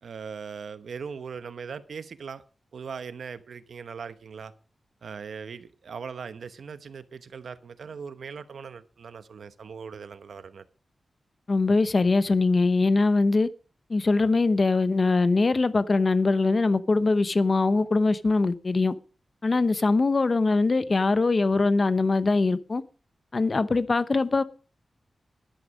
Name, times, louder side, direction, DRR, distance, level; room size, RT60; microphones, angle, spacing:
voice 1, 0.0-2.4 2.7-4.5 5.0-10.6, right 6 dB, 85° right, 1.0 m, -39 dB
voice 2, 11.5-13.5 13.9-18.9 19.4-22.8 23.3-24.4, left 3 dB, 40° left, 0.8 m, -22 dB
12.0 x 11.0 x 5.2 m
wide cardioid pair, 110°, 0 cm